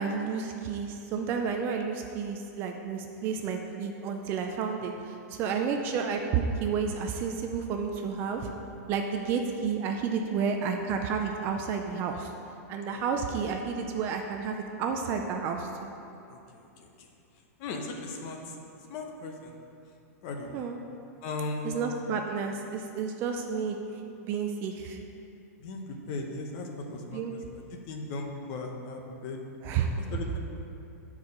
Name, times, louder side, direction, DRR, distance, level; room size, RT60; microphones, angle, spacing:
voice 1, 0.0-8.5 8.9-12.3 12.7-15.9 20.5-20.8 21.6-23.8 24.2-25.0 27.1-27.3 29.6-29.9, right 6 dB, 25° right, 4 dB, 0.3 m, -31 dB
voice 2, 16.3-16.9 17.6-18.6 18.9-19.6 20.2-20.7 21.2-21.7 25.6-29.4 30.0-30.4, left 3 dB, 35° left, 2 dB, 0.8 m, -38 dB
8.4 x 4.7 x 5.3 m, 2.7 s
supercardioid pair, 165°, 9 cm